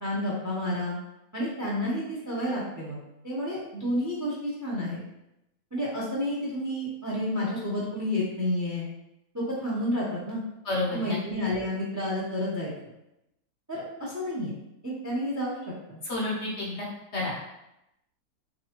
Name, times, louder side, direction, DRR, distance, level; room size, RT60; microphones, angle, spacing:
voice 1, 0.0-1.0 1.3-5.0 5.7-8.9 9.3-10.4 10.9-12.7 13.7-14.5 14.8-16.0, left 1 dB, 20° right, -5 dB, 0.5 m, -30 dB
voice 2, 10.6-11.2 16.0-16.9 17.1-17.3, left 2 dB, 55° left, -4 dB, 0.9 m, -30 dB
3.8 x 3.2 x 2.9 m, 0.88 s
omnidirectional pair, 1.5 m